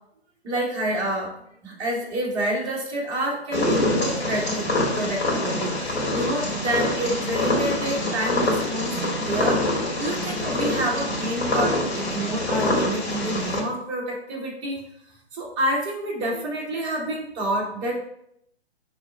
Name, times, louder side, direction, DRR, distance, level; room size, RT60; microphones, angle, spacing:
voice 1, 0.4-1.3 1.6-4.7 4.9-9.6 9.9-14.8 15.3-17.9, right 1 dB, 15° right, -4 dB, 0.8 m, -28 dB
Purr, 3.5-13.6, left 1 dB, 75° left, 1.6 m, -25 dB
3.5 x 3.2 x 4.0 m, 0.74 s
hypercardioid pair, 150°, 33 cm